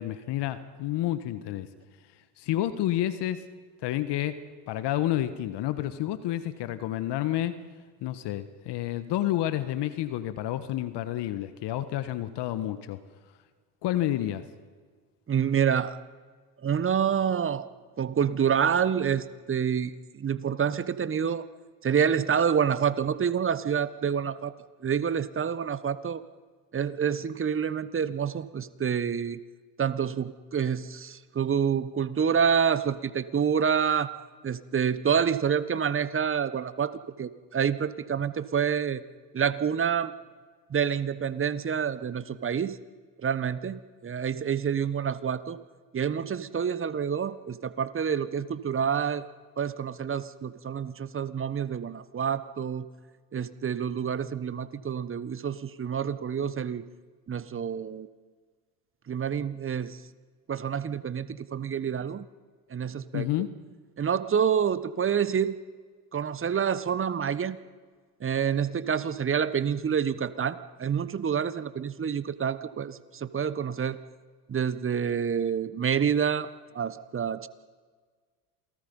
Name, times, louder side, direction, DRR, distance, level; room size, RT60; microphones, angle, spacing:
voice 1, 0.0-1.7 2.4-3.4 3.8-4.4 4.7-7.6 8.0-13.0 13.8-14.4 63.1-63.5, left 13 dB, 55° left, 12 dB, 1.5 m, -29 dB
voice 2, 15.3-16.0 16.6-17.7 18.0-21.4 21.8-24.5 24.8-26.2 26.7-29.4 29.8-34.1 34.4-36.9 37.2-39.0 39.3-40.1 40.7-42.8 43.2-45.6 45.9-49.2 49.6-52.8 53.3-56.8 57.3-58.1 59.1-60.0 60.5-62.3 62.7-63.3 64.0-65.6 66.1-67.6 68.2-74.0 74.5-77.5, right 7 dB, 25° right, 15 dB, 1.1 m, -27 dB
28.0 x 18.5 x 5.5 m, 1.5 s
hypercardioid pair, 75°, 50 cm